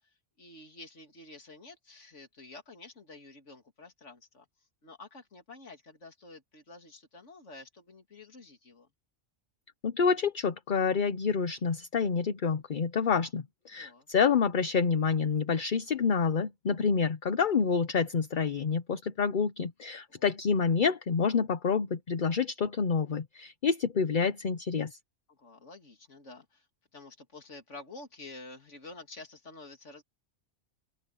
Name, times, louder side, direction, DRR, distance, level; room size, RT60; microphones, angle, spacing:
voice 1, 0.4-4.5 4.8-8.9 13.8-14.1 20.1-20.2 25.3-26.6 26.9-30.0, left 3 dB, 85° left, 3.0 m, -49 dB
voice 2, 9.8-25.0, left 5 dB, 45° left, 0.9 m, -28 dB
open air
omnidirectional pair, 1.2 m